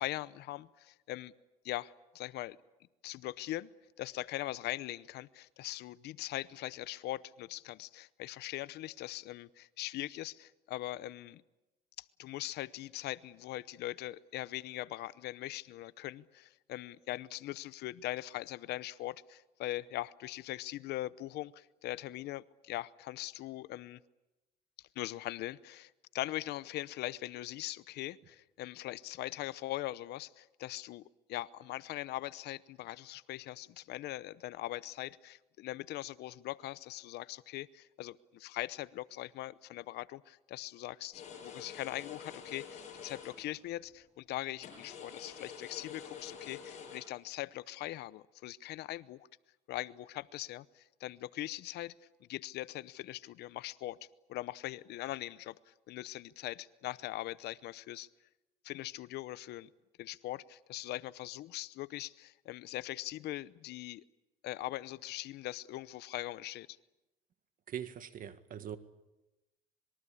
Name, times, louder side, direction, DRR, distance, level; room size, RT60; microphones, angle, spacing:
voice 1, 0.0-1.3 1.6-2.6 3.0-3.7 4.0-11.4 12.2-24.0 25.0-31.0 31.3-49.3 49.7-51.9 52.3-54.0 54.3-58.1 58.6-59.7 60.0-64.0 64.4-66.7, left 15 dB, 80° left, 18 dB, 0.8 m, -41 dB
sound 1, 41.1-43.5 44.6-47.0, left 6 dB, 45° left, 7.8 m, -48 dB
voice 2, 67.7-68.8, right 9 dB, 55° right, 11 dB, 1.9 m, -42 dB
26.0 x 22.0 x 8.5 m, 1.0 s
cardioid pair, 110°, 17 cm